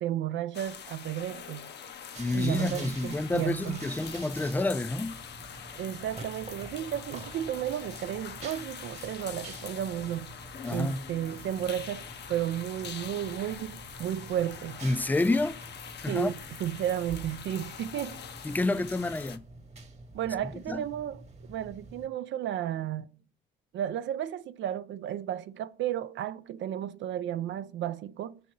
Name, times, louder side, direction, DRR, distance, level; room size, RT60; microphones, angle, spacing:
voice 1, 0.0-1.7 2.3-3.9 5.8-10.4 10.7-14.8 16.1-18.2 20.1-21.2 21.5-23.1 23.7-28.4, right 11 dB, 70° right, 0.4 m, -33 dB
sound 1, 0.5-19.4, left 7 dB, 60° left, 0.7 m, -44 dB
sound 2, 2.1-22.1, right 3 dB, 35° right, 1.2 m, -48 dB
voice 2, 2.2-5.2 10.6-11.0 14.8-15.6 16.0-16.3 18.4-19.4 20.7-20.8, left 2 dB, 10° left, 0.4 m, -29 dB
6.3 x 4.0 x 5.3 m
cardioid pair, 90°, 20 cm